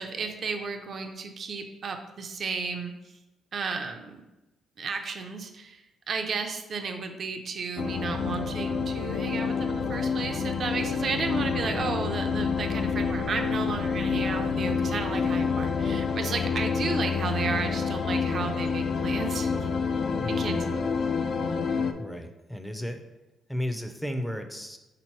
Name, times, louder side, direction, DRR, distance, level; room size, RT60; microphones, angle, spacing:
voice 1, 0.0-2.9 3.5-4.2 4.8-19.6 20.3-20.9, right 5 dB, 50° right, 5 dB, 0.5 m, -33 dB
sound 1, 7.8-21.9, left 5 dB, 60° left, 0.4 m, -28 dB
voice 2, 20.1-20.6 22.0-23.0 23.5-24.8, equal, 5° left, 6 dB, 0.5 m, -34 dB
3.7 x 2.9 x 4.5 m, 1.0 s
cardioid pair, 90°, 0 cm